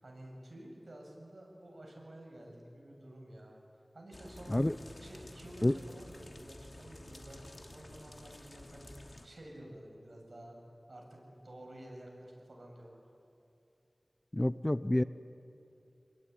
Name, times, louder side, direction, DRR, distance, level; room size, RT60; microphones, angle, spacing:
voice 1, 0.0-3.6 3.9-4.6 5.0-8.9 9.2-10.6 10.9-13.0, right 1 dB, 65° right, 0 dB, 7.5 m, -51 dB
sound 1, 4.1-9.3, left 1 dB, 45° left, 2.6 m, -52 dB
voice 2, 14.3-15.0, left 1 dB, 25° left, 14 dB, 0.7 m, -28 dB
27.5 x 21.0 x 10.0 m, 2.6 s
wide cardioid pair, 55°, 0 cm